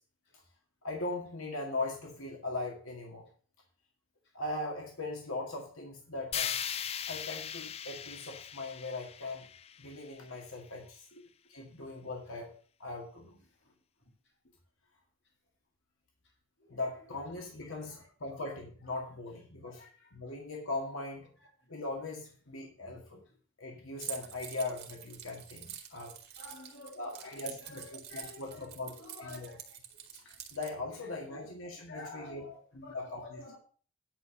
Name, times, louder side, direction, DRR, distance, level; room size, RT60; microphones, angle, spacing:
voice 1, 0.8-3.3 4.3-6.6 7.1-9.4 9.8-11.1 11.5-12.5 12.8-13.4 16.7-19.9 20.1-21.3 21.7-23.2 23.6-26.1 26.9-28.9 29.2-29.5 30.5-32.5 32.7-33.4, left 2 dB, 90° left, 2.1 m, -39 dB
sound 1, 6.3-10.4, left 9 dB, 30° left, 0.4 m, -39 dB
Keys jangling, 24.0-30.7, right 10 dB, 50° right, 1.9 m, -46 dB
voice 2, 26.4-29.6 31.9-33.6, left 2 dB, 60° left, 3.3 m, -49 dB
10.0 x 5.6 x 6.5 m
head